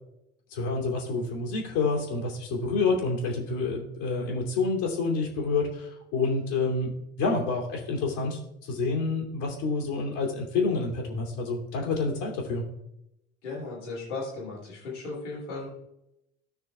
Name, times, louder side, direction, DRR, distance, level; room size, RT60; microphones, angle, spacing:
voice 1, 0.5-6.9 7.2-12.6, left 3 dB, 65° left, -1 dB, 2.8 m, -28 dB
voice 2, 13.4-15.7, left 3 dB, 80° left, -5 dB, 2.9 m, -36 dB
17.5 x 6.2 x 2.4 m, 0.84 s
figure-of-eight pair, 60°, 35 cm